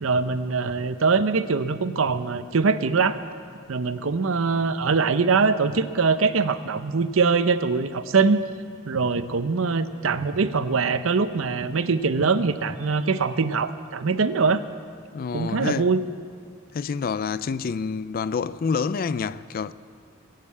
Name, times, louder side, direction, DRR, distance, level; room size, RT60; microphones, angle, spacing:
voice 1, 0.0-3.2 3.7-8.4 8.8-14.6 15.3-16.0, right 4 dB, 65° right, 0.6 m, -23 dB
voice 2, 15.1-15.9 16.7-19.7, left 5 dB, 45° left, 0.3 m, -27 dB
20.5 x 7.5 x 8.4 m
head